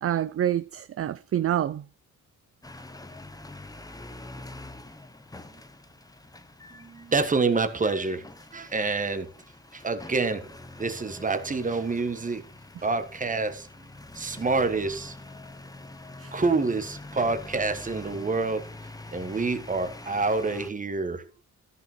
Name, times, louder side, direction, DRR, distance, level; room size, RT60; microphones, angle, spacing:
voice 1, 0.0-1.8 16.2-16.3, right 11 dB, 45° right, 0.5 m, -27 dB
sound 1, 2.6-20.7, left 2 dB, 10° left, 0.9 m, -45 dB
voice 2, 6.7-9.3 9.7-10.5 10.8-12.4 12.8-13.9 14.1-15.2 16.3-18.7 19.1-21.3, right 3 dB, 25° right, 1.4 m, -27 dB
13.5 x 6.1 x 4.5 m
wide cardioid pair, 150°, 32 cm